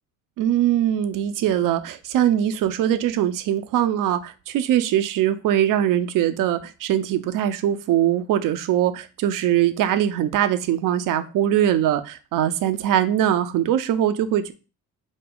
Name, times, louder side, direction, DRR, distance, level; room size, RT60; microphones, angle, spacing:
voice 1, 0.4-14.5, right 11 dB, 50° right, 0.6 m, -22 dB
5.0 x 2.2 x 3.7 m
hypercardioid pair, 55°, 42 cm